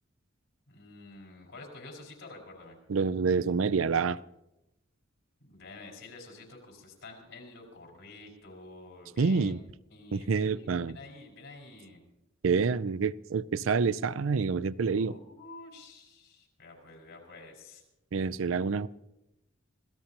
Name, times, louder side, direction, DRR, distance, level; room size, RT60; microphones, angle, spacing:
voice 1, 0.7-2.8 5.4-9.6 9.9-12.0 15.0-17.8, left 2 dB, 70° left, 0 dB, 5.4 m, -49 dB
voice 2, 2.9-4.2 9.2-9.6 10.1-11.0 12.4-15.1 18.1-18.9, right 5 dB, 80° right, 17 dB, 0.5 m, -27 dB
26.0 x 18.0 x 3.0 m, 0.90 s
head